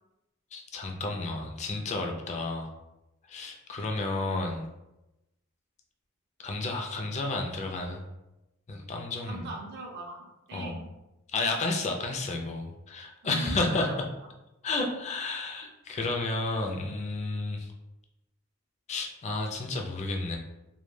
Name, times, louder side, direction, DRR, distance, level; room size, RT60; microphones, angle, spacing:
voice 1, 0.5-2.7 3.3-4.7 6.4-8.1 8.7-9.5 10.5-10.8 11.3-14.1 14.6-17.7 18.9-20.4, left 2 dB, 30° left, 2 dB, 0.3 m, -31 dB
voice 2, 9.3-11.0 13.2-14.0, right 3 dB, 50° right, 0 dB, 0.4 m, -41 dB
2.1 x 2.1 x 3.1 m, 0.95 s
head